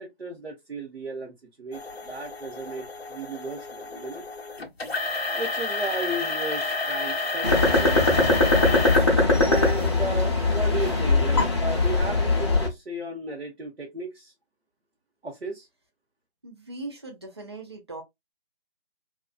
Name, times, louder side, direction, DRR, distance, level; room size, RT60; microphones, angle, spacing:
voice 1, 0.0-4.2 5.3-8.8 9.4-14.3 15.2-15.7, right 2 dB, 85° right, 1.0 m, -35 dB
sound 1, 1.7-9.1 9.5-9.9 10.5-10.6 11.3-11.4, left 3 dB, 70° left, 0.6 m, -30 dB
sound 2, 7.4-12.7, left 3 dB, 25° left, 0.5 m, -21 dB
voice 2, 16.4-18.0, right 2 dB, 25° right, 0.4 m, -39 dB
2.6 x 2.3 x 2.3 m
figure-of-eight pair, 145°, 32 cm